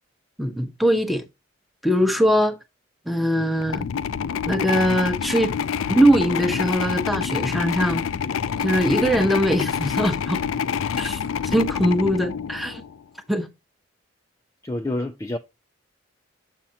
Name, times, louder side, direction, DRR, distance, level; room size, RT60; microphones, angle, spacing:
voice 1, 0.4-1.2 1.8-2.6 3.1-3.9 4.5-5.5 5.9-8.0 8.6-10.4 11.0-12.8 13.3-13.5, equal, ahead, 0.9 m, -21 dB
sound 1, 3.6-13.0, left 7 dB, 80° left, 0.4 m, -27 dB
voice 2, 14.6-15.4, left 1 dB, 15° left, 0.4 m, -27 dB
7.3 x 5.5 x 2.9 m
head